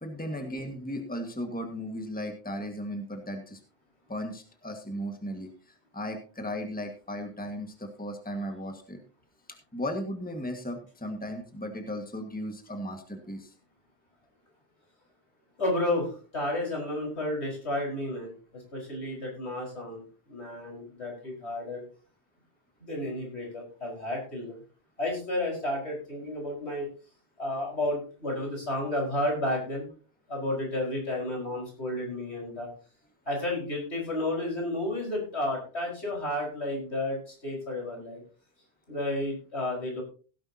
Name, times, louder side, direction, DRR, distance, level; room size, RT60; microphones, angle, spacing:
voice 1, 0.0-3.6 4.1-5.5 5.9-9.0 9.7-13.5, equal, 10° left, 4 dB, 1.7 m, -36 dB
voice 2, 15.6-20.0 20.3-21.8 22.8-24.6 25.0-26.9 27.4-29.9 30.3-32.7 33.3-38.2 38.9-40.0, left 1 dB, 75° left, -1 dB, 5.3 m, -32 dB
17.0 x 10.5 x 2.8 m, 0.38 s
omnidirectional pair, 1.1 m